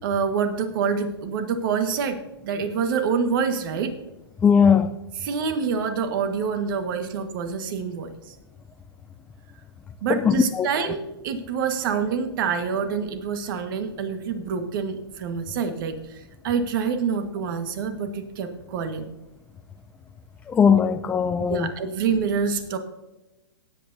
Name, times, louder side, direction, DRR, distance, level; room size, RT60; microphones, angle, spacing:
voice 1, 0.0-3.9 5.2-8.3 10.0-19.1 21.5-22.8, right 6 dB, 50° right, 8 dB, 1.7 m, -26 dB
voice 2, 4.4-4.9 10.1-10.7 20.5-21.7, left 7 dB, 10° left, 7 dB, 0.4 m, -19 dB
18.5 x 8.4 x 2.8 m, 1.0 s
hypercardioid pair, 135°, 14 cm